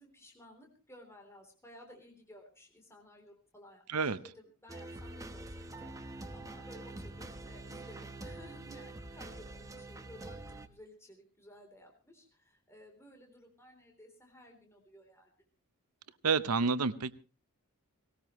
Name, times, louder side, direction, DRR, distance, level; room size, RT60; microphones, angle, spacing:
voice 1, 0.0-15.3, left 1 dB, 10° left, 2 dB, 3.5 m, -56 dB
sound 1, 4.7-10.7, right 2 dB, 15° right, 1.1 m, -45 dB
voice 2, 16.2-17.1, right 4 dB, 80° right, 13 dB, 0.8 m, -29 dB
19.0 x 18.5 x 3.1 m, 0.34 s
head